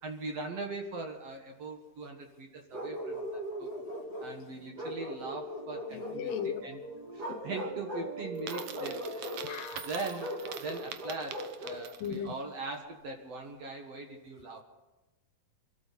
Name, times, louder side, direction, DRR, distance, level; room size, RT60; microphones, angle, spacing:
voice 1, 0.0-3.7 4.2-6.3 6.6-6.8 7.1-9.5 9.9-10.3 10.6-14.6, right 3 dB, 55° right, 3 dB, 2.1 m, -41 dB
Bark, 2.7-4.3 4.8-6.5 7.1-8.1 8.5-9.4 10.2-11.9, equal, 30° right, 2.2 m, -39 dB
sound 1, 3.4-10.7, right 1 dB, 10° right, 3.2 m, -45 dB
voice 2, 5.9-6.6 7.3-7.4 9.4-9.9 12.0-12.3, left 8 dB, 75° left, 9 dB, 2.4 m, -36 dB
Coin (dropping), 8.4-12.3, right 8 dB, 80° right, 1.4 m, -44 dB
25.0 x 13.0 x 4.1 m, 1.1 s
omnidirectional pair, 4.0 m